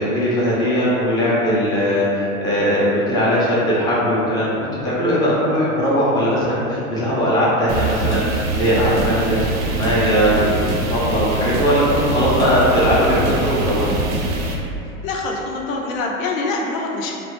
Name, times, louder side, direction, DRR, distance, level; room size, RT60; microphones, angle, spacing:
voice 1, 0.0-4.6 4.8-13.9, equal, 10° left, -7 dB, 0.4 m, -19 dB
sound 1, 7.7-14.6, right 3 dB, 70° right, 0.6 m, -24 dB
voice 2, 14.8-17.1, left 3 dB, 70° left, -1 dB, 0.6 m, -25 dB
2.4 x 2.0 x 2.9 m, 2.8 s
hypercardioid pair, 95°, 42 cm